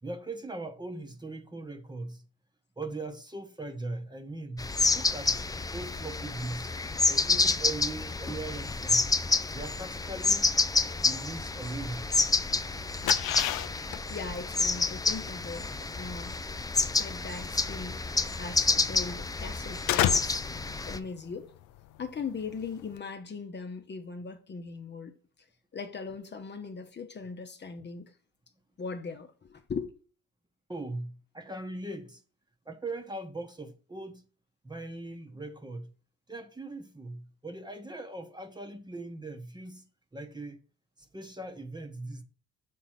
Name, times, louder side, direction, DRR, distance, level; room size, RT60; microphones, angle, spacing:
voice 1, 0.0-2.2 2.8-5.5 5.7-6.7 7.1-9.1 9.5-10.5 11.0-12.1 30.7-32.2 32.7-34.2 34.6-35.9 36.3-39.9 40.1-40.6 41.1-42.2, right 2 dB, 15° right, 1.0 m, -40 dB
sound 1, 4.6-21.0, left 3 dB, 10° left, 0.5 m, -29 dB
sound 2, 12.6-23.0, left 13 dB, 85° left, 0.5 m, -34 dB
voice 2, 14.1-15.7 16.0-16.4 16.8-18.0 18.4-20.5 20.9-21.5 22.0-25.2 25.7-28.1 28.8-29.9, left 4 dB, 35° left, 0.9 m, -39 dB
6.3 x 4.0 x 5.8 m
cardioid pair, 90°, 30 cm